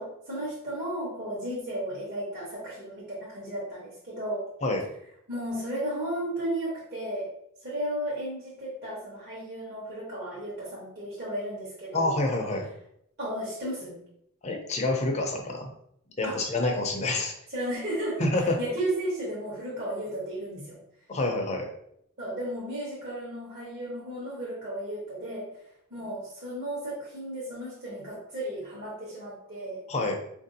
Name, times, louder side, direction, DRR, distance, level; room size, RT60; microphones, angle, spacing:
voice 1, 0.0-4.5 5.3-7.3 7.6-12.1 13.2-14.0 16.2-16.4 17.5-18.3 18.6-20.8 22.2-25.5 25.9-29.9, right 1 dB, 50° right, -8 dB, 1.0 m, -34 dB
voice 2, 11.9-12.7 14.4-15.7 16.2-17.3 18.2-18.6 21.1-21.7 29.9-30.2, left 2 dB, 30° left, 1 dB, 0.5 m, -27 dB
4.5 x 2.6 x 2.6 m, 0.75 s
head